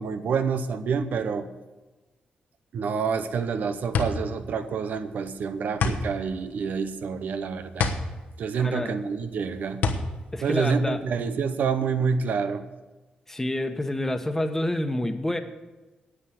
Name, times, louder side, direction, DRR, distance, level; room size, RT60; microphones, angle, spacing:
voice 1, 0.0-1.5 2.7-7.9 8.4-9.8 10.4-12.7, right 5 dB, 70° right, 10 dB, 0.9 m, -27 dB
sound 1, 3.1-11.5, left 4 dB, 80° left, 1.2 m, -30 dB
voice 2, 8.6-8.9 10.3-11.0 13.3-15.4, left 1 dB, 15° left, 7 dB, 1.2 m, -28 dB
10.0 x 8.7 x 7.8 m, 1.2 s
cardioid pair, 70°, 3 cm